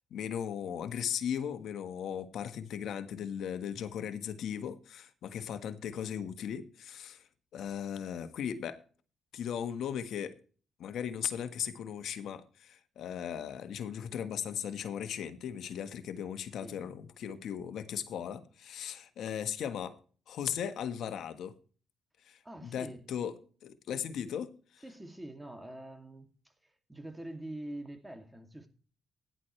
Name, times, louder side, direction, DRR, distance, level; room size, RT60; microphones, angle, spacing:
voice 1, 0.1-7.2 7.5-8.8 9.3-10.4 10.8-20.0 20.3-21.5 22.3-23.3 23.6-24.8, left 8 dB, 70° left, 1.4 m, -37 dB
voice 2, 16.6-16.9 22.4-23.1 24.8-28.7, right 1 dB, 10° right, 2.5 m, -45 dB
16.5 x 10.5 x 3.3 m
cardioid pair, 90°, 0 cm